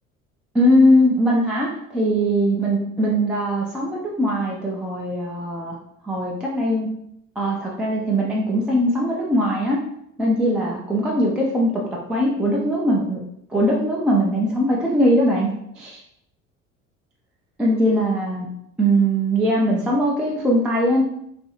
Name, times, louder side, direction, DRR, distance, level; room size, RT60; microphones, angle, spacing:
voice 1, 0.5-5.8 6.0-6.9 7.4-9.8 10.2-13.2 13.5-15.5 15.8-16.0 17.6-18.5 18.8-21.0, equal, 5° right, -4 dB, 0.3 m, -20 dB
3.0 x 2.4 x 2.9 m, 0.75 s
figure-of-eight pair, 60°, 40 cm